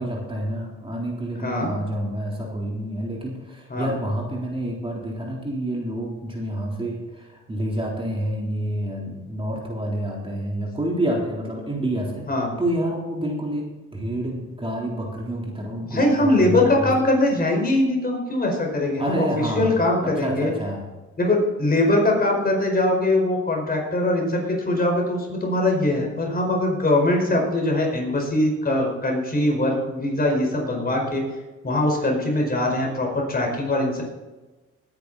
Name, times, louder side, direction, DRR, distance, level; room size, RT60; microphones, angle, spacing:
voice 1, 0.0-12.3 12.6-16.9 19.0-19.7 20.0-20.8, right 1 dB, 20° right, -2 dB, 3.7 m, -28 dB
voice 2, 1.4-1.7 3.7-3.9 12.3-12.5 15.9-20.5 21.2-31.2 31.6-34.0, left 1 dB, 30° left, 0 dB, 5.0 m, -22 dB
19.5 x 10.0 x 4.2 m, 1.2 s
cardioid pair, 90°, 30 cm